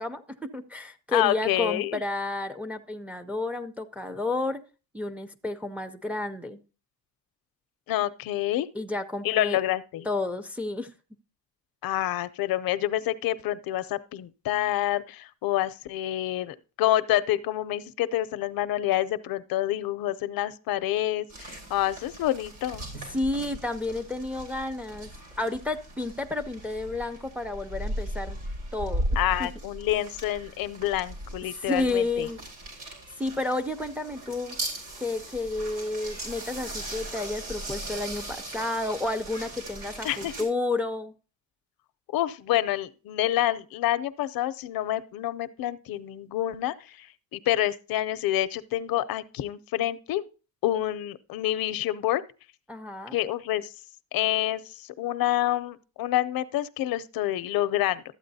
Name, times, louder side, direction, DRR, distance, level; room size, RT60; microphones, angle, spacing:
voice 1, 0.0-4.6 4.9-6.6 8.7-9.6 10.1-10.9 23.1-25.1 25.4-28.4 28.7-29.5 31.5-32.4 33.2-34.6 35.0-41.1 52.7-53.2, left 2 dB, 5° right, 0.4 m, -31 dB
voice 2, 1.1-2.0 7.9-8.7 9.2-10.1 11.8-22.9 29.2-32.3 40.0-40.3 42.1-47.1 47.3-50.2 50.6-52.2 53.1-53.7 54.1-58.0, left 13 dB, 75° left, 0.6 m, -27 dB
sound 1, 21.3-40.4, right 1 dB, 65° right, 4.1 m, -38 dB
13.0 x 8.4 x 2.7 m
cardioid pair, 160°, 35 cm